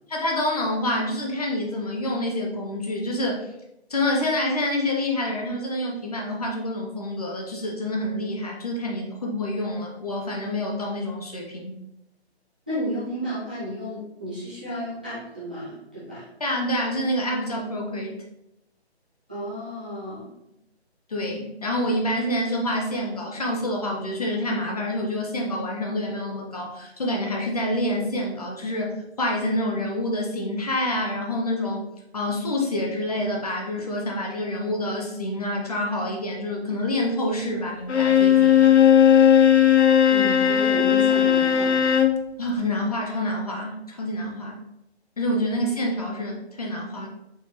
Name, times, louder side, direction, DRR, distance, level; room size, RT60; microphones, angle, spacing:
voice 1, 0.1-3.5 3.9-11.8 16.4-18.2 21.1-31.9 32.1-38.6 42.4-44.6 45.2-47.1, left 1 dB, 35° left, -1 dB, 0.6 m, -27 dB
voice 2, 12.7-16.2 19.3-20.3 40.1-41.9, equal, 10° right, -14 dB, 0.5 m, -32 dB
Bowed string instrument, 37.9-42.2, left 9 dB, 80° left, 0.6 m, -17 dB
4.4 x 3.5 x 2.9 m, 0.85 s
figure-of-eight pair, 155°, 33 cm